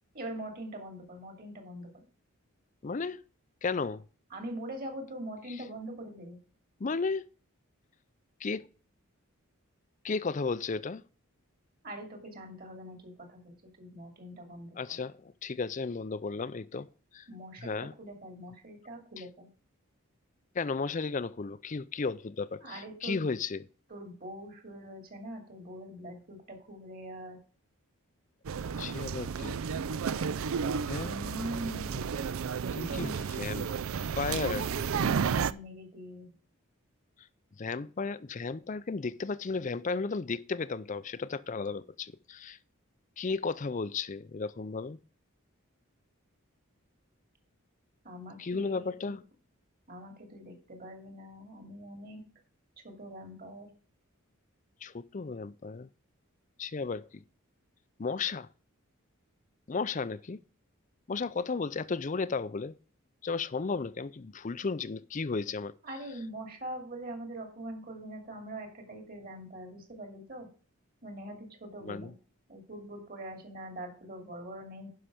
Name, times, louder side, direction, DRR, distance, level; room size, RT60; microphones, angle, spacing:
voice 1, 0.1-2.0 4.3-6.4 11.8-15.0 17.3-19.5 22.6-23.3 23.9-27.4 31.0-32.1 32.7-33.2 34.3-36.3 48.0-49.2 49.9-52.2 52.8-53.7 65.8-70.5 71.0-72.1 72.5-74.9, right 1 dB, 40° right, 2.5 m, -43 dB
voice 2, 2.8-3.2 3.6-4.0 5.5-5.6 6.8-7.2 8.4-8.7 10.0-11.1 14.7-16.9 17.1-17.3 17.6-17.9 19.2-19.3 20.5-23.7 28.8-29.6 30.9-31.1 32.7-33.1 33.4-33.7 34.2-34.8 37.6-42.6 43.2-45.0 48.4-49.2 54.8-55.9 56.6-57.2 58.0-58.5 59.7-60.4 61.1-62.8 63.2-65.8 71.8-72.1, left 4 dB, 35° left, 0.4 m, -34 dB
sound 1, 28.4-35.5, right 6 dB, 70° right, 0.4 m, -32 dB
11.0 x 5.7 x 5.0 m
head